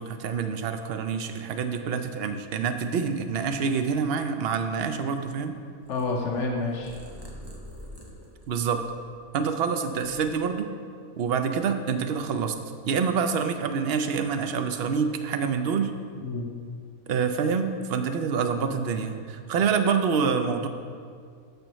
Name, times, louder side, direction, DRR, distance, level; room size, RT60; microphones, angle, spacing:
voice 1, 0.0-5.6 8.5-8.9 9.3-10.7 11.2-12.6 12.9-15.9 17.1-20.7, right 6 dB, 60° right, 7 dB, 0.6 m, -26 dB
Purr, 5.8-9.4 9.8-10.9, equal, 20° right, 0.8 m, -46 dB
voice 2, 5.9-6.9 16.2-16.5, left 3 dB, 60° left, -1 dB, 1.0 m, -28 dB
13.5 x 5.2 x 3.1 m, 2.1 s
omnidirectional pair, 1.5 m